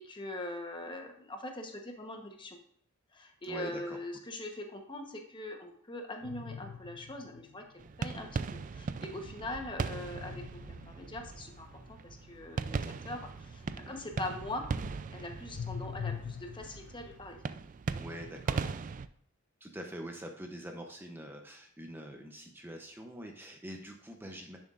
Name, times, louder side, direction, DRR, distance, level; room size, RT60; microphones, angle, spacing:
voice 1, 0.0-2.6 3.1-14.7 15.1-17.4 18.6-18.7, left 1 dB, 25° left, 3 dB, 1.0 m, -42 dB
voice 2, 3.4-4.0 9.4-9.5 13.7-14.1 18.0-18.6 19.6-24.6, equal, 10° right, 3 dB, 0.7 m, -45 dB
sound 1, 6.2-7.9 10.1-13.9 14.2-17.2, left 7 dB, 60° left, 0.4 m, -45 dB
sound 2, 7.8-19.1, right 5 dB, 40° right, 0.3 m, -39 dB
10.5 x 7.2 x 2.5 m, 0.66 s
head